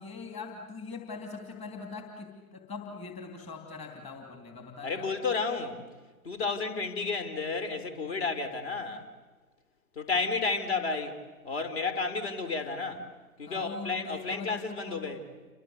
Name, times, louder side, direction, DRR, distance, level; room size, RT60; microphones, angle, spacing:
voice 1, 0.0-5.1 13.5-15.1, left 4 dB, 15° left, 3 dB, 3.0 m, -42 dB
voice 2, 4.8-5.8 6.2-9.1 10.0-11.2 11.4-13.0 13.4-15.2, left 4 dB, 45° left, 10 dB, 3.9 m, -32 dB
29.0 x 25.5 x 8.0 m, 1.3 s
figure-of-eight pair, 135°, 44 cm